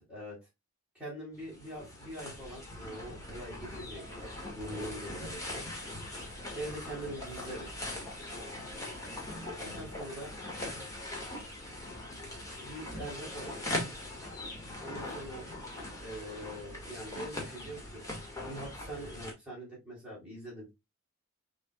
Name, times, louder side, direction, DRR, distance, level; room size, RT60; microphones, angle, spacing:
voice 1, 0.1-0.4 0.9-4.3 4.5-5.6 6.5-7.7 9.6-10.3 12.6-13.7 14.8-15.5 16.0-18.0 18.4-20.7, right 1 dB, 5° right, -6 dB, 3.1 m, -43 dB
sound 1, 1.3-19.3, left 1 dB, 15° left, 1.6 m, -41 dB
6.4 x 3.5 x 2.2 m, 0.22 s
head